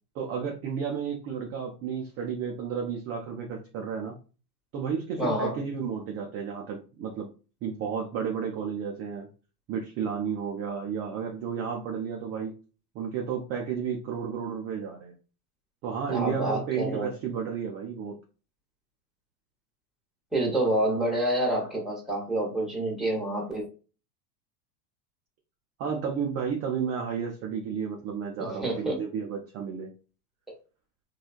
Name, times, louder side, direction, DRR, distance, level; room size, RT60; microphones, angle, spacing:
voice 1, 0.1-4.1 4.7-7.3 7.6-9.3 9.7-12.5 12.9-15.1 15.8-18.1 25.8-29.9, right 7 dB, 30° right, 1 dB, 0.5 m, -32 dB
voice 2, 5.2-5.6 16.1-17.1 20.3-23.6 28.4-29.0, right 1 dB, ahead, -3 dB, 1.0 m, -28 dB
3.0 x 2.3 x 2.4 m, 0.35 s
hypercardioid pair, 105°, 50 cm